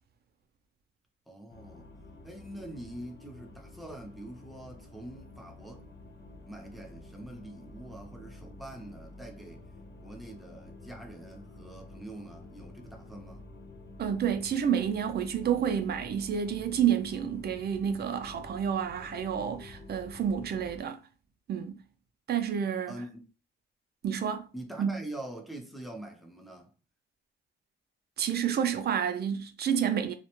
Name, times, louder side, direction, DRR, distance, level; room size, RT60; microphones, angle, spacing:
voice 1, 1.3-1.9 2.2-5.9 6.4-9.7 10.0-13.5 22.9-23.3 24.5-26.7, right 1 dB, ahead, 0.6 m, -44 dB
sound 1, 1.5-20.9, left 2 dB, 60° left, 0.8 m, -49 dB
voice 2, 14.0-21.0 21.5-21.8 22.3-22.9 24.0-24.5 24.8-25.0 28.2-30.1, right 8 dB, 55° right, 0.4 m, -29 dB
2.3 x 2.1 x 2.9 m
cardioid pair, 100°, 20 cm